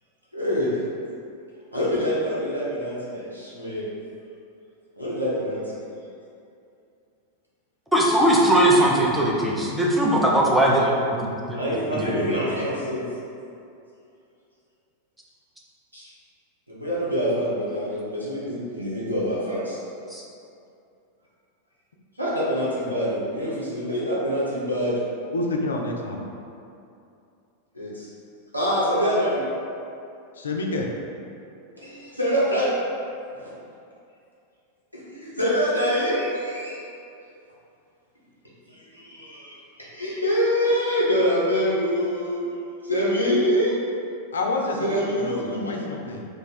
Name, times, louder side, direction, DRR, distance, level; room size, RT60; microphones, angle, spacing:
voice 1, 0.3-0.7 1.7-3.9 5.0-5.8 11.5-13.0 15.9-16.1 16.7-19.8 22.2-24.9 27.7-28.1 28.5-29.4 31.7-32.7 33.4-33.5 35.1-36.8 38.7-42.4 42.8-43.7 44.8-45.8, equal, 85° right, -8 dB, 0.8 m, -25 dB
voice 2, 7.9-11.6 11.9-12.4 20.1-20.2, right 1 dB, 5° right, -4 dB, 0.5 m, -20 dB
voice 3, 25.3-26.2 30.4-30.9 44.3-44.9 45.2-46.3, left 2 dB, 70° left, 1 dB, 0.4 m, -28 dB
2.5 x 2.3 x 4.0 m, 2.6 s
figure-of-eight pair, 90°, 0 cm